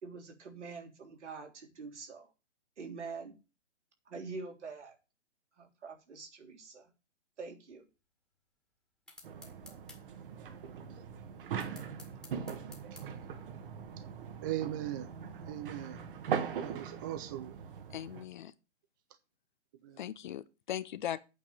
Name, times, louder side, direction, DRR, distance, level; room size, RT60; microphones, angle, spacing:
voice 1, 0.0-2.3 2.8-3.3 4.1-5.0 5.6-6.9 7.4-7.9, right 4 dB, 70° right, 3.6 m, -45 dB
sound 1, 9.1-10.0 11.6-13.1, left 2 dB, ahead, 1.8 m, -52 dB
sound 2, 9.2-18.2, right 7 dB, 50° right, 1.6 m, -41 dB
voice 2, 14.4-15.1 15.5-16.0 16.6-17.6 19.8-20.0, right 13 dB, 20° right, 0.4 m, -38 dB
voice 3, 17.9-18.5 20.0-21.2, left 11 dB, 40° left, 0.7 m, -39 dB
8.6 x 5.3 x 7.6 m
hypercardioid pair, 140°, 36 cm